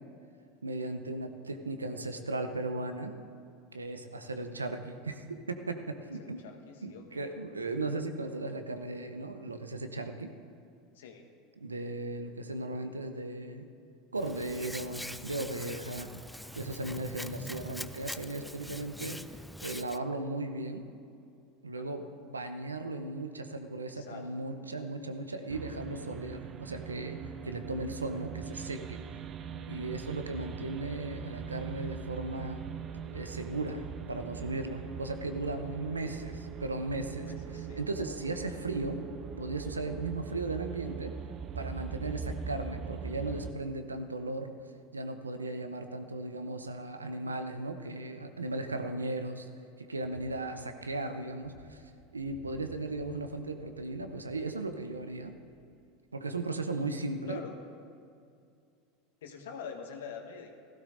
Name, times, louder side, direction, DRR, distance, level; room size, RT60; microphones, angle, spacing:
voice 1, 0.6-3.1 3.7-6.4 6.8-10.3 11.6-13.7 14.1-16.1 16.6-19.2 19.6-20.9 21.6-29.0 29.7-32.6 33.1-39.0 39.4-41.1 41.6-44.5 44.9-49.5 49.8-51.8 52.1-55.3 56.1-57.4, right 2 dB, 90° right, 7 dB, 0.8 m, -36 dB
voice 2, 6.2-7.3 10.9-11.3 21.8-22.1 23.8-24.3 24.6-24.7 37.2-37.8 50.5-50.7 57.3-57.6 59.2-60.5, left 6 dB, 70° left, 3 dB, 1.3 m, -46 dB
Hands, 14.2-20.0, left 1 dB, ahead, 0.4 m, -43 dB
sound 1, 25.5-43.5, right 7 dB, 40° right, 0.6 m, -41 dB
sound 2, 49.9-56.1, equal, 70° right, 1.5 m, -58 dB
16.0 x 15.0 x 2.7 m, 2.4 s
hypercardioid pair, 80°, 0 cm